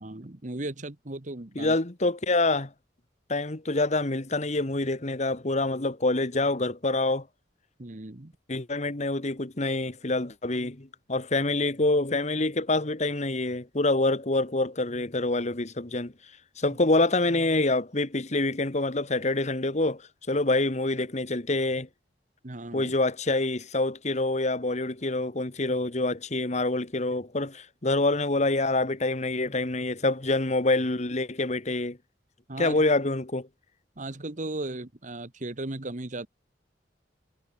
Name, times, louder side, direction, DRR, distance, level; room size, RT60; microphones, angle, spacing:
voice 1, 0.0-1.8 7.8-8.3 16.7-16.8 22.4-22.9 32.5-32.8 34.0-36.3, right 2 dB, 45° right, 1.4 m, -36 dB
voice 2, 1.5-2.7 3.3-7.3 8.5-16.1 16.6-20.0 20.3-21.9 22.7-32.0 32.6-33.5, left 2 dB, 40° left, 1.6 m, -26 dB
head